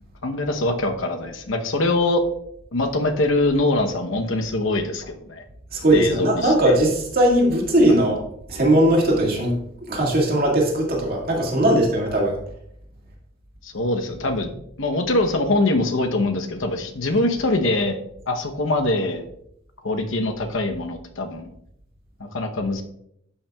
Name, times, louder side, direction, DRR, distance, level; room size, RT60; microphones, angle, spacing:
voice 1, 0.2-2.2 2.7-5.4 5.9-6.8 7.9-8.0 13.6-14.5 14.8-18.0 18.3-19.2 19.8-21.5 22.2-22.8, left 2 dB, 75° left, 5 dB, 0.9 m, -23 dB
voice 2, 5.7-8.2 8.5-9.6 9.9-12.4, right 1 dB, 50° right, -1 dB, 2.0 m, -19 dB
12.5 x 5.8 x 2.3 m, 0.73 s
head